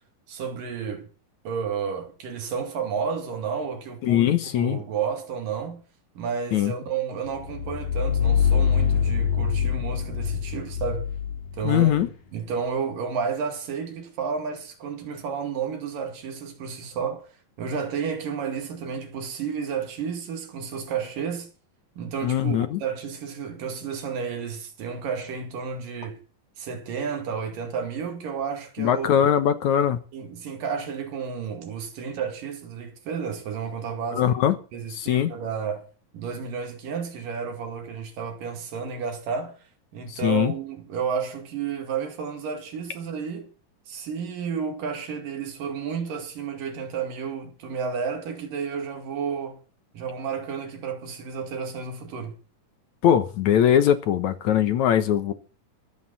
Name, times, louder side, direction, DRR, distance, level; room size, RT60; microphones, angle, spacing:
voice 1, 0.3-1.1 1.5-5.8 6.2-11.1 11.6-12.0 12.3-17.3 17.6-21.5 22.0-26.2 26.6-29.3 30.1-34.4 34.7-35.9 36.1-39.6 39.9-43.5 43.9-49.6 49.9-52.4, right 6 dB, 75° right, 3.9 m, -31 dB
voice 2, 4.0-4.8 6.5-6.7 11.6-12.1 22.2-22.8 28.8-30.0 34.1-34.6 34.9-35.3 40.1-40.5 53.0-55.3, left 10 dB, 65° left, 2.3 m, -21 dB
sound 1, 7.4-12.1, left 7 dB, 80° left, 4.1 m, -24 dB
22.5 x 8.5 x 4.2 m
omnidirectional pair, 3.8 m